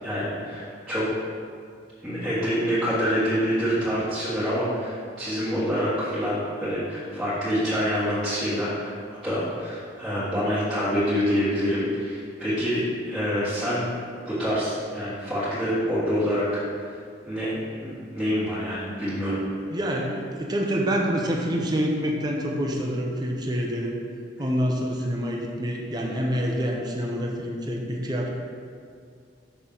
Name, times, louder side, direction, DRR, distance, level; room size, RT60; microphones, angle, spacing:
voice 1, 0.0-1.0 2.0-12.8 13.1-13.9 14.2-17.0 17.2-19.4, equal, ahead, -16 dB, 1.6 m, -26 dB
voice 2, 19.7-24.0 24.4-28.3, equal, 25° right, -1 dB, 0.7 m, -27 dB
6.1 x 5.8 x 3.8 m, 2.2 s
head